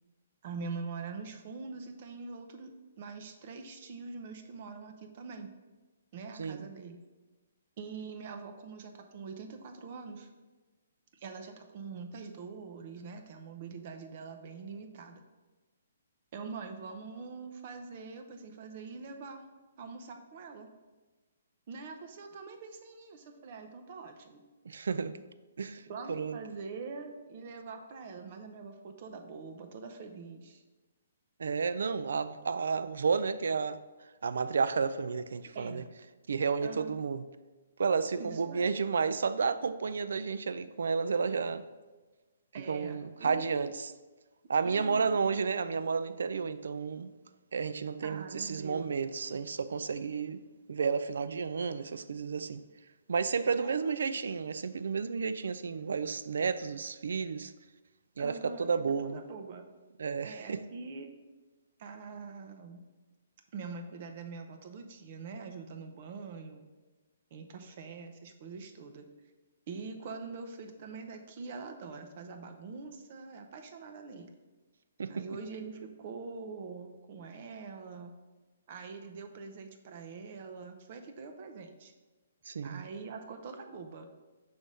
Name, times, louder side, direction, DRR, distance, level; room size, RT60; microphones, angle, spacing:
voice 1, 0.4-2.7 3.0-5.5 6.1-7.0 7.8-10.3 11.1-15.2 16.3-19.4 19.8-20.7 21.7-24.4 25.9-30.6 35.5-35.8 36.6-36.9 38.2-38.7 42.5-43.7 44.6-45.2 48.0-48.9 53.6-54.2 58.2-58.7 59.0-59.7 60.2-61.1 61.8-62.9 63.5-66.6 67.3-69.1 69.7-74.3 75.1-78.1 78.7-81.9 82.6-84.2, right 4 dB, 40° right, 0.7 m, -44 dB
voice 2, 24.6-25.2 25.6-26.4 31.4-33.8 34.2-35.8 36.3-37.3 37.8-41.7 42.7-43.9 44.5-47.1 47.5-50.4 50.7-52.6 53.1-57.5 58.2-59.2 60.0-60.6 75.0-75.2 82.5-82.9, right 5 dB, 80° right, 0.4 m, -31 dB
6.2 x 3.4 x 5.3 m
hypercardioid pair, 165°, 0 cm